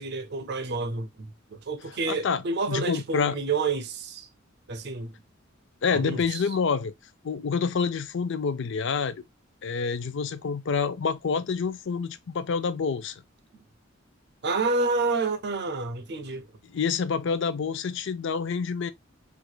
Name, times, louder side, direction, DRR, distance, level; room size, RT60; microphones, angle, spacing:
voice 1, 0.0-4.3 4.7-5.2 5.9-6.4 13.5-13.6 14.4-16.5, right 3 dB, 55° right, 0.6 m, -29 dB
voice 2, 2.1-2.4 2.7-3.4 5.8-6.9 7.2-9.2 9.6-13.1 16.7-18.9, left 5 dB, 65° left, 0.5 m, -27 dB
4.6 x 2.4 x 2.3 m
head